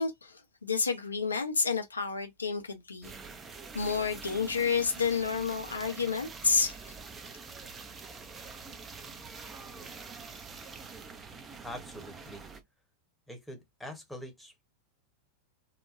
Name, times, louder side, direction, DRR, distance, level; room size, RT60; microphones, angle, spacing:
voice 1, 0.0-3.1 3.7-6.8, left 5 dB, 75° left, 0.5 m, -30 dB
sound 1, 3.0-12.6, right 4 dB, 20° right, 0.5 m, -45 dB
voice 2, 11.6-12.5 13.3-14.6, equal, ahead, 0.9 m, -44 dB
2.8 x 2.2 x 2.4 m
figure-of-eight pair, 90°, 0 cm